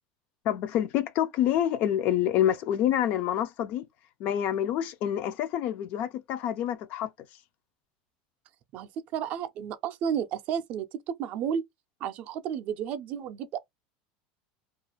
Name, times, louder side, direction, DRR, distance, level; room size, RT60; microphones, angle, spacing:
voice 1, 0.4-3.8 4.2-7.1, left 11 dB, 45° left, 0.3 m, -27 dB
voice 2, 8.7-11.6 12.0-13.6, right 8 dB, 40° right, 0.4 m, -32 dB
2.4 x 2.4 x 2.9 m
cardioid pair, 165°, 4 cm